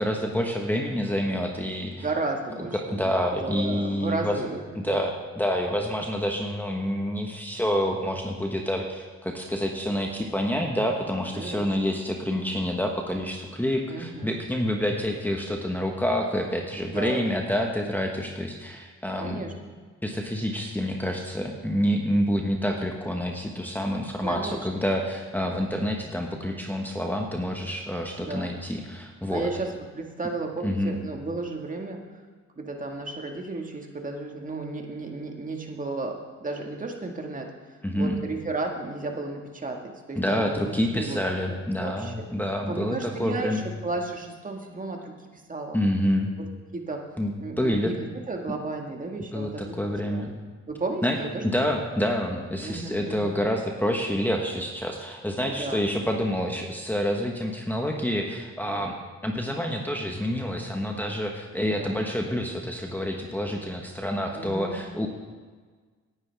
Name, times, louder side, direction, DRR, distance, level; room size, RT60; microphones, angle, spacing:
voice 1, 0.0-2.0 2.7-4.4 4.8-19.4 20.0-29.5 30.6-31.0 37.8-38.2 40.2-43.6 45.7-46.3 47.2-47.9 49.3-50.3 51.0-51.2 51.5-58.9 59.2-65.1, equal, 5° left, 0 dB, 1.3 m, -28 dB
voice 2, 2.0-3.1 3.4-5.1 11.3-11.9 13.8-14.4 16.8-17.5 19.2-19.7 24.2-24.6 28.2-28.6 29.3-32.0 32.6-37.5 38.0-41.2 41.5-42.1 42.7-45.8 46.4-46.5 46.7-47.1 47.4-49.8 50.1-50.4 50.7-51.7 52.6-53.4 55.4-56.1 58.6-59.0 61.6-62.0 64.3-64.8, right 3 dB, 25° right, 2 dB, 1.9 m, -34 dB
18.0 x 9.9 x 3.5 m, 1.5 s
cardioid pair, 90°, 30 cm